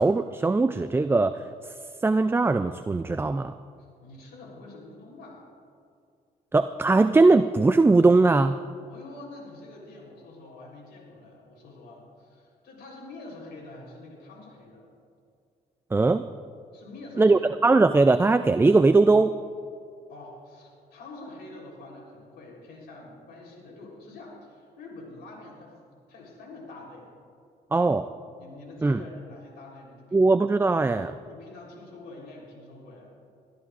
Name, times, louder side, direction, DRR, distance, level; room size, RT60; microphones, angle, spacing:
voice 1, 0.0-1.4 2.0-3.5 6.5-8.6 15.9-16.2 17.2-19.3 27.7-28.0 28.8-29.0 30.1-31.2, right 3 dB, 15° right, 10 dB, 0.3 m, -20 dB
voice 2, 3.8-5.5 8.9-14.9 16.7-17.9 20.1-27.1 27.7-28.0 28.4-30.4 31.3-33.1, left 2 dB, 90° left, -2 dB, 3.7 m, -46 dB
23.0 x 13.0 x 2.5 m, 2.4 s
cardioid pair, 80°, 17 cm